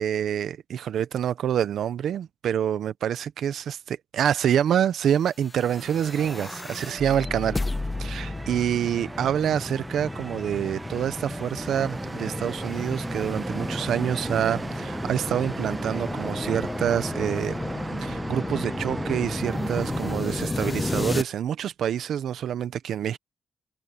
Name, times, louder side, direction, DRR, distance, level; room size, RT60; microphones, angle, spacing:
voice 1, 0.0-7.6 8.0-17.6 18.0-23.2, right 9 dB, 75° right, 1.1 m, -27 dB
sound 1, 5.5-21.2, left 2 dB, 25° left, 0.7 m, -33 dB
sound 2, 5.6-20.1, right 2 dB, 25° right, 1.4 m, -39 dB
sound 3, 11.6-20.4, right 4 dB, 45° right, 5.4 m, -39 dB
open air
supercardioid pair, 50°, 0 cm